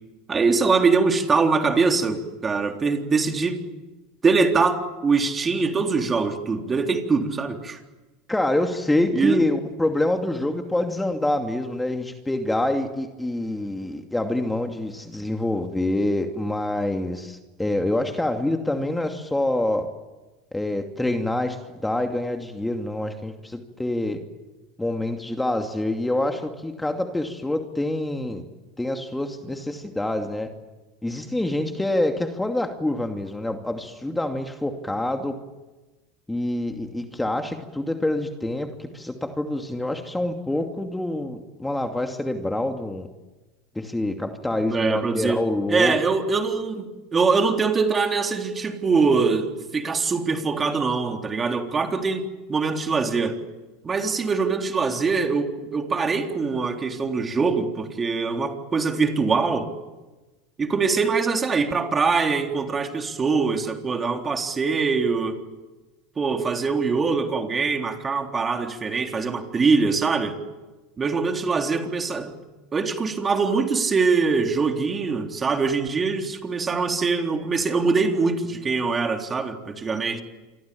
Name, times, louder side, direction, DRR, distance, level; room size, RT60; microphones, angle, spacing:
voice 1, 0.3-3.6 4.2-7.8 9.1-9.4 44.7-45.4 45.7-52.2 52.5-53.4 53.8-59.7 60.6-65.4 66.2-70.4 71.0-72.3 72.7-80.2, right 4 dB, 25° right, 4 dB, 3.8 m, -23 dB
voice 2, 8.3-19.9 20.5-24.2 24.8-28.4 28.8-30.5 31.0-35.3 36.3-43.1 43.7-45.9, left 1 dB, 10° left, 5 dB, 2.6 m, -26 dB
28.0 x 24.5 x 8.7 m, 1.2 s
hypercardioid pair, 90°, 0 cm